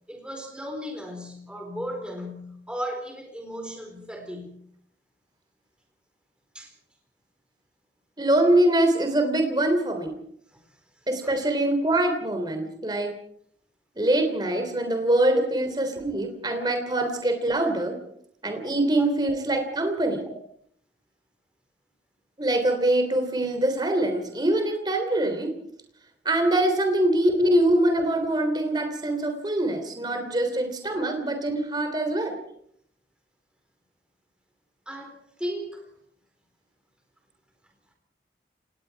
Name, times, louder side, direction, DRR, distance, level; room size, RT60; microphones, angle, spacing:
voice 1, 0.1-4.5 6.5-6.7 11.2-11.3 15.3-15.4 34.9-35.8, equal, 5° right, 2 dB, 4.2 m, -34 dB
voice 2, 8.2-10.1 11.1-13.1 14.0-18.0 18.4-20.2 22.4-25.5 26.2-32.4, right 1 dB, 25° right, 6 dB, 3.2 m, -24 dB
28.5 x 19.5 x 4.7 m, 0.68 s
head